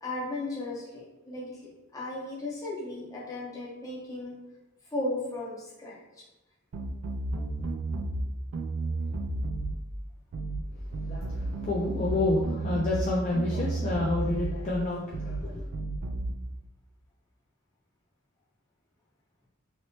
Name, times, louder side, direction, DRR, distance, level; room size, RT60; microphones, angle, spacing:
voice 1, 0.0-4.3 4.9-6.2, left 2 dB, 15° left, -5 dB, 0.8 m, -36 dB
sound 1, 6.7-8.3 8.5-9.8 10.3-10.6 10.9-13.1 13.3-14.6 15.1-15.4 15.7-16.3, right 2 dB, 85° right, 0.4 m, -32 dB
voice 2, 10.7-15.7, left 2 dB, 35° left, -4 dB, 0.3 m, -29 dB
2.9 x 2.9 x 2.9 m, 1.0 s
head